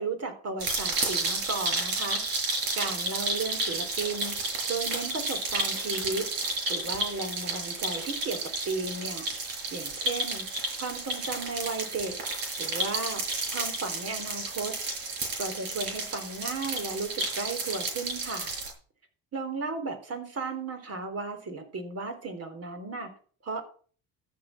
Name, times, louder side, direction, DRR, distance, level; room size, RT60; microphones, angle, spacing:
voice 1, 0.0-2.2 2.7-6.3 6.7-8.4 8.7-9.3 9.7-10.5 10.8-12.2 12.6-13.2 13.5-14.7 15.4-18.5 19.3-23.1 23.4-23.6, right 3 dB, 40° right, 6 dB, 3.8 m, -34 dB
sound 1, 0.6-18.7, right 2 dB, 65° right, 6.7 m, -32 dB
14.0 x 7.1 x 5.9 m, 0.43 s
supercardioid pair, 90°, 37 cm